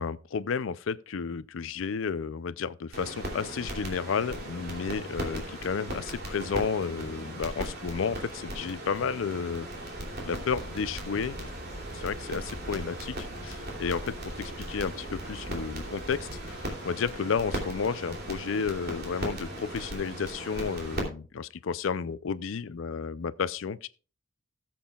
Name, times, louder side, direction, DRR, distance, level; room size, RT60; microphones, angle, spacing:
voice 1, 0.0-9.7 10.2-11.5 11.9-13.2 13.4-23.9, left 6 dB, 75° left, 0.5 m, -32 dB
sound 1, 2.9-21.0, right 1 dB, 55° right, 2.9 m, -38 dB
sound 2, 10.5-16.7, right 1 dB, 35° right, 1.2 m, -45 dB
18.5 x 7.6 x 2.3 m
head